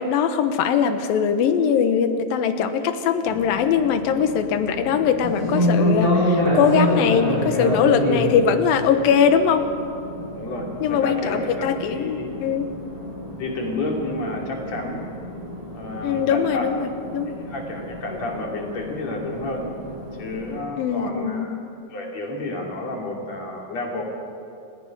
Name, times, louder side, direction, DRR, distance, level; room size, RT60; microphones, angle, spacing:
voice 1, 0.0-9.7 10.8-12.7 16.0-17.4 20.8-21.6, left 7 dB, 90° left, 9 dB, 2.9 m, -21 dB
sound 1, 3.3-20.6, equal, 10° right, 7.2 m, -28 dB
voice 2, 10.3-12.3 13.4-15.0 15.7-16.6 17.3-19.7 20.2-21.6 21.9-24.0, left 2 dB, 50° left, 0 dB, 4.0 m, -30 dB
30.0 x 17.0 x 5.4 m, 2.5 s
omnidirectional pair, 4.0 m